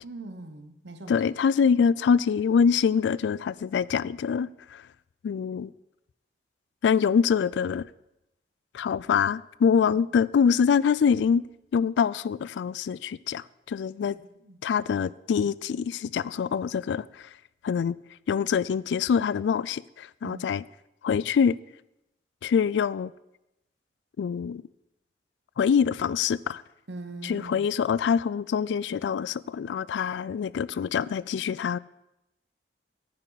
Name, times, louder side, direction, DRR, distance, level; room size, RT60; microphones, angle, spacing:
voice 1, 0.0-1.2 14.2-14.6 20.2-20.4 26.9-27.7, right 2 dB, 80° right, 1.0 m, -41 dB
voice 2, 1.1-4.8 5.2-5.7 6.8-7.9 8.7-11.4 11.7-14.2 14.6-17.1 17.6-18.0 18.3-20.6 21.0-21.6 22.4-23.1 24.2-24.6 25.6-26.6 27.2-31.8, left 6 dB, 85° left, 0.3 m, -25 dB
9.8 x 9.1 x 4.0 m
head